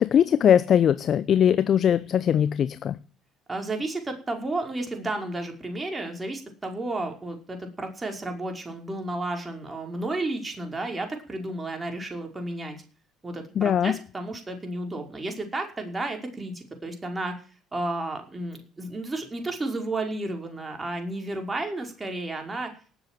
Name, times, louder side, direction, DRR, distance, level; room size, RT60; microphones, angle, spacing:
voice 1, 0.0-3.0 13.6-13.9, left 9 dB, 50° left, 14 dB, 0.7 m, -21 dB
voice 2, 3.5-12.8 13.2-17.3 17.7-22.7, right 2 dB, 20° right, 4 dB, 5.2 m, -32 dB
18.5 x 8.1 x 7.7 m, 0.40 s
hypercardioid pair, 60°, 0 cm